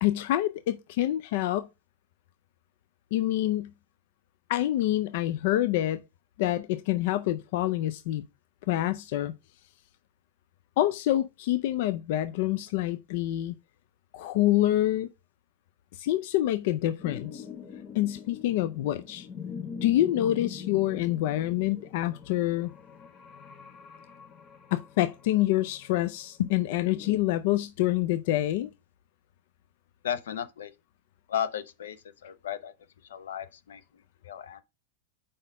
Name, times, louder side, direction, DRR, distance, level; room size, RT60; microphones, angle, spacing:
voice 1, 0.0-1.7 3.1-3.7 4.5-6.0 6.4-8.2 8.7-9.3 10.8-13.5 14.1-15.1 16.0-17.4 17.9-19.3 19.8-22.7 24.7-28.7, left 14 dB, 60° left, 0.5 m, -27 dB
sound 1, 17.0-27.2, left 6 dB, 30° left, 0.9 m, -43 dB
voice 2, 30.0-30.7 31.3-32.0 32.2-32.7 33.1-34.6, left 9 dB, 90° left, 0.8 m, -34 dB
5.1 x 4.2 x 5.4 m
supercardioid pair, 140°, 0 cm